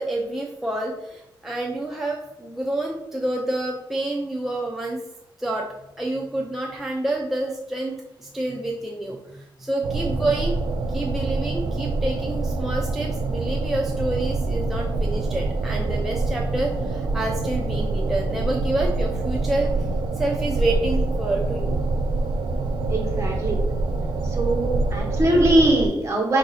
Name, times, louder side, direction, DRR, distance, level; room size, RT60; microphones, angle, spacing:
voice 1, 0.0-5.0 5.4-5.7 6.0-7.9 8.2-10.6 10.9-19.9 20.2-21.8, right 2 dB, 5° right, -1 dB, 0.4 m, -28 dB
sound 1, 9.8-25.9, right 3 dB, 85° right, 0.4 m, -25 dB
voice 2, 22.9-23.6 24.2-26.4, right 1 dB, 35° right, -1 dB, 1.2 m, -21 dB
4.6 x 2.7 x 4.1 m, 0.87 s
wide cardioid pair, 140°, 9 cm